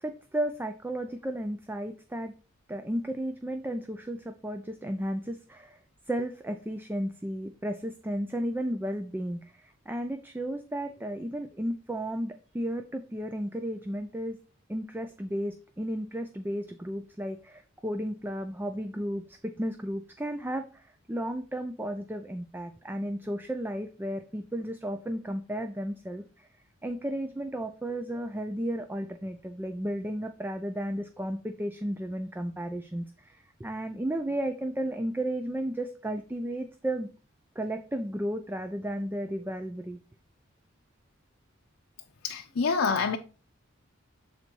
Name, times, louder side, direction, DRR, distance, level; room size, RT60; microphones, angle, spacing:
voice 1, 0.0-2.3 2.7-5.8 6.1-14.4 14.7-26.5 26.8-37.1 37.6-40.0, right 1 dB, 10° right, 0.4 m, -33 dB
voice 2, 42.2-43.2, left 5 dB, 90° left, 0.6 m, -26 dB
6.8 x 4.0 x 4.5 m
head